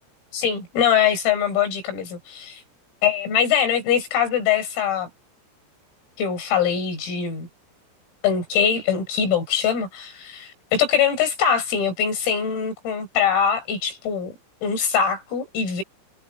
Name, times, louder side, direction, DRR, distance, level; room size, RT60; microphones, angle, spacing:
voice 1, 0.3-2.6 3.0-5.1 6.2-7.5 8.2-14.3 14.6-15.8, left 8 dB, 80° left, 8.6 m, -22 dB
omnidirectional pair, 6.0 m